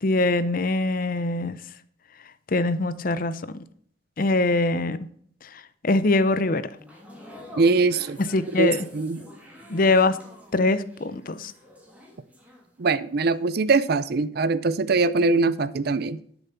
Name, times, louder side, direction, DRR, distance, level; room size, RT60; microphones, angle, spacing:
voice 1, 0.0-1.6 2.5-3.4 4.2-5.1 5.5-6.6 8.2-8.8 9.7-10.2 10.5-11.5, left 2 dB, 45° left, 0.6 m, -23 dB
sound 1, 6.7-13.0 13.3-13.5, left 1 dB, 5° right, 2.7 m, -47 dB
voice 2, 7.6-8.2 8.6-9.2 12.8-16.2, right 3 dB, 50° right, 0.5 m, -22 dB
12.0 x 7.0 x 5.6 m
head